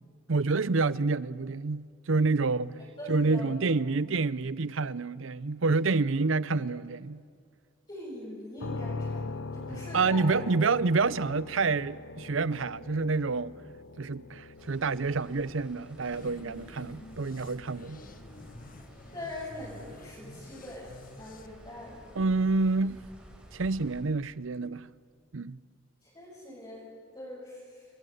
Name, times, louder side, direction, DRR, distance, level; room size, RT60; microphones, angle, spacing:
voice 1, 0.3-2.8 3.1-7.2 9.9-13.6 14.0-18.0 22.1-23.0 23.5-24.9 25.3-25.6, right 3 dB, 75° right, 0.7 m, -28 dB
voice 2, 3.0-3.5 6.5-6.6 7.9-10.6 19.1-20.9 21.2-22.0 26.0-27.9, left 1 dB, 25° left, 6.8 m, -42 dB
sound 1, 8.6-22.3, left 3 dB, 70° left, 0.7 m, -43 dB
sound 2, 14.6-24.0, equal, 5° right, 5.0 m, -53 dB
sound 3, 16.0-21.5, left 2 dB, 45° left, 1.4 m, -50 dB
29.5 x 21.5 x 8.0 m
head